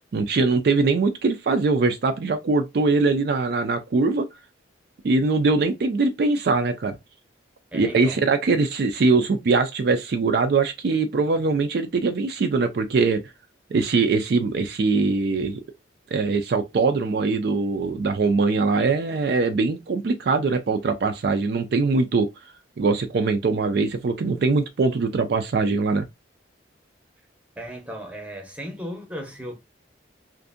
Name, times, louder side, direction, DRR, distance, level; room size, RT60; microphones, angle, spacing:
voice 1, 0.1-4.3 5.0-7.0 7.7-13.2 13.7-15.6 16.1-22.3 22.8-26.1, right 3 dB, 55° right, 0.3 m, -22 dB
voice 2, 7.7-8.2 27.6-29.6, equal, 5° right, 0.6 m, -36 dB
2.5 x 2.5 x 2.4 m
head